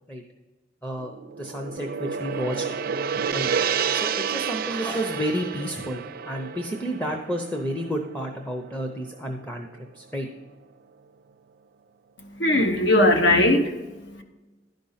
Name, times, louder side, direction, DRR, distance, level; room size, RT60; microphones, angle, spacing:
Gong, 1.0-9.3, right 7 dB, 55° right, 0.4 m, -30 dB
voice 1, 1.4-2.7 3.3-3.5 3.9-9.7 9.9-10.3, equal, 5° left, 2 dB, 0.6 m, -30 dB
voice 2, 12.2-14.2, left 1 dB, 70° left, 5 dB, 1.0 m, -20 dB
11.0 x 5.2 x 5.6 m, 1.2 s
head